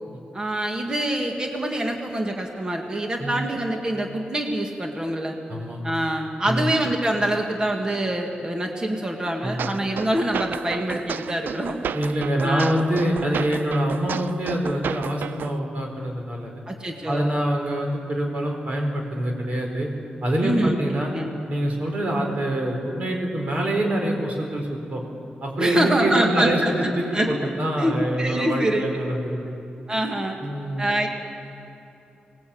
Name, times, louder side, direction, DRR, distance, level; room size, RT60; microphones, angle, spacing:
voice 1, 0.3-5.4 5.8-11.8 12.4-12.8 16.7-17.3 20.4-20.8 21.1-21.3 25.6-27.3 27.8-28.8 29.9-30.4 30.8-31.1, right 1 dB, 25° right, 2 dB, 2.1 m, -25 dB
voice 2, 5.5-5.8 6.5-6.7 9.4-9.7 11.9-16.5 17.1-19.9 20.2-21.1 21.5-25.0 25.4-29.5 30.4-30.9, right 1 dB, 45° right, 1 dB, 4.6 m, -25 dB
sound 1, 9.6-15.6, right 7 dB, 85° right, 0.5 m, -32 dB
25.0 x 19.5 x 8.8 m, 2.8 s
wide cardioid pair, 135°, 3 cm